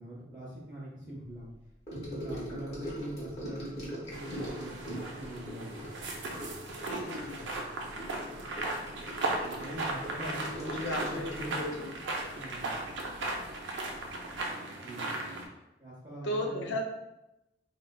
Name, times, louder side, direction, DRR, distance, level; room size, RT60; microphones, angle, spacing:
voice 1, 0.0-1.5 1.9-5.8 9.3-11.6 12.3-12.7 14.7-15.1 15.8-16.8, equal, 20° right, -9 dB, 0.6 m, -43 dB
Gurgling / Sink (filling or washing) / Trickle dribble, 1.9-13.5 13.8-14.1 14.4-14.5, equal, 35° left, 0.9 m, -42 dB
sound 1, 4.1-15.4, right 2 dB, 70° right, 0.5 m, -37 dB
voice 2, 6.8-7.4 10.2-11.9 16.2-16.8, left 1 dB, 70° left, 2 dB, 0.5 m, -36 dB
3.7 x 2.2 x 2.2 m, 0.91 s
head